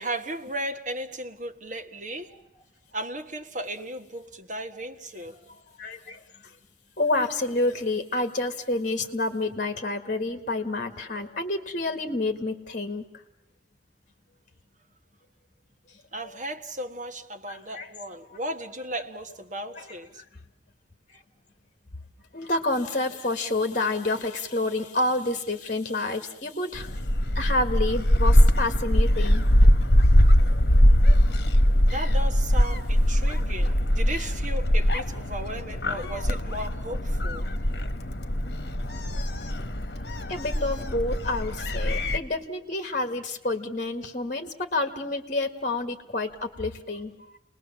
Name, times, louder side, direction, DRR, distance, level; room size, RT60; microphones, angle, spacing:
voice 1, 0.0-2.4 2.9-5.4 16.1-20.2 31.9-37.5, right 1 dB, 45° right, 1.5 m, -35 dB
voice 2, 5.8-6.2 7.0-13.0 17.5-17.9 19.8-19.9 21.1-21.2 22.3-26.9 27.4-29.4 30.5-30.6 39.2-39.6 40.3-47.1, left 2 dB, 45° left, 1.8 m, -29 dB
Gull seagull, 26.7-42.2, equal, 65° left, 1.4 m, -22 dB
30.0 x 20.5 x 7.3 m
head